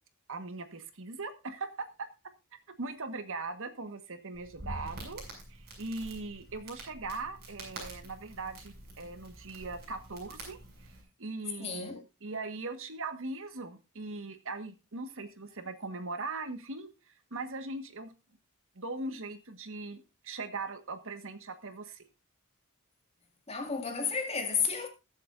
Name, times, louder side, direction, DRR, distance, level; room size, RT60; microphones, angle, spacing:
voice 1, 0.3-2.1 2.8-5.2 5.5-10.6 10.9-11.0 11.2-11.9 12.2-18.1 18.7-22.0, right 3 dB, 65° right, 1.5 m, -40 dB
Crackle, 4.3-11.0, right 1 dB, 50° right, 6.5 m, -46 dB
voice 2, 11.6-12.0 23.5-24.9, left 5 dB, 30° left, 2.2 m, -32 dB
21.0 x 7.8 x 2.6 m
head